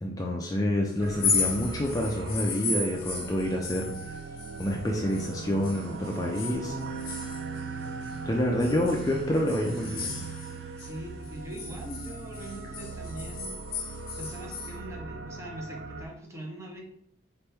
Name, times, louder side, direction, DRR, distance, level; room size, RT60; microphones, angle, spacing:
voice 1, 0.0-3.9 4.6-6.7 8.3-10.2, left 1 dB, 20° left, 0 dB, 0.4 m, -28 dB
sound 1, 1.0-16.1, right 4 dB, 60° right, 0.3 m, -40 dB
sound 2, 1.1-5.3 5.6-8.2 8.6-10.9 11.2-14.7, left 5 dB, 50° left, 0.7 m, -35 dB
sound 3, 6.7-12.9, right 3 dB, 45° right, 1.1 m, -43 dB
voice 2, 10.8-16.8, right 1 dB, 15° right, -1 dB, 0.8 m, -42 dB
4.2 x 2.9 x 3.4 m, 0.70 s
head